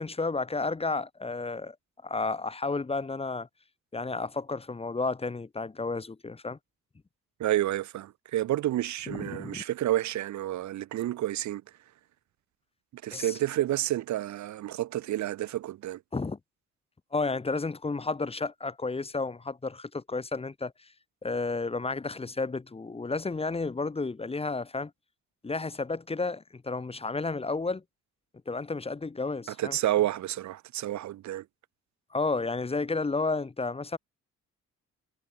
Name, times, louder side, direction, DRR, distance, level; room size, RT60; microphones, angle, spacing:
voice 1, 0.0-1.8 2.0-3.5 3.9-6.6 9.1-9.6 13.1-13.3 16.1-16.4 17.1-20.7 21.2-24.9 25.4-27.8 28.5-29.8 32.1-34.0, left 3 dB, 20° left, 1.1 m, -32 dB
voice 2, 7.4-11.6 12.9-16.0 29.5-31.5, right 13 dB, 70° right, 0.9 m, -30 dB
cardioid pair, 90°, 30 cm